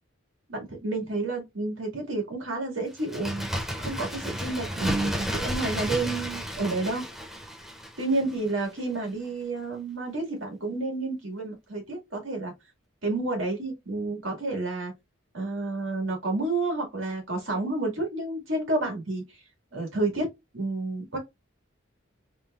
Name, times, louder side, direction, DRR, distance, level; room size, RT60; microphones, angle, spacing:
voice 1, 0.5-3.5 3.8-7.0 8.0-12.5 13.0-14.9 15.3-19.2 19.7-20.3 20.5-21.2, right 2 dB, 80° right, 2.2 m, -30 dB
Bird, 2.9-8.5 8.8-8.9, equal, ahead, 0.6 m, -33 dB
4.5 x 3.5 x 2.5 m
head